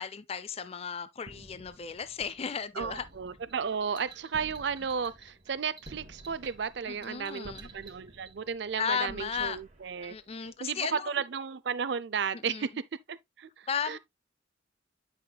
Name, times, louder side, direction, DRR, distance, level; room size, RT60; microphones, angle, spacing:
voice 1, 0.0-3.1 6.9-7.7 8.8-9.6 10.0-11.1 12.5-12.7 13.7-14.0, left 7 dB, 30° left, 0.4 m, -35 dB
sound 1, 1.2-10.7, right 1 dB, 40° right, 1.3 m, -53 dB
sound 2, 2.2-8.4, right 5 dB, 20° right, 1.4 m, -53 dB
voice 2, 2.7-12.8 13.1-14.0, right 6 dB, 60° right, 0.5 m, -34 dB
10.0 x 5.7 x 2.2 m
head